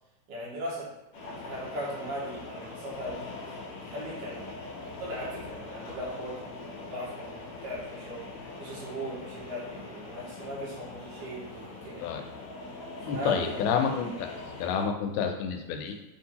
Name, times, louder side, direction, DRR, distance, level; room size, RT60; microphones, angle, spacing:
voice 1, 0.3-0.9 1.4-4.5 5.0-8.3 8.6-12.2 12.9-13.6, equal, 90° right, -6 dB, 2.9 m, -38 dB
sound 1, 1.1-14.9, left 3 dB, 65° left, 1.5 m, -42 dB
voice 2, 13.0-14.3 14.6-16.0, left 6 dB, 85° left, 4 dB, 2.2 m, -29 dB
6.2 x 2.7 x 2.8 m, 1.0 s
omnidirectional pair, 3.8 m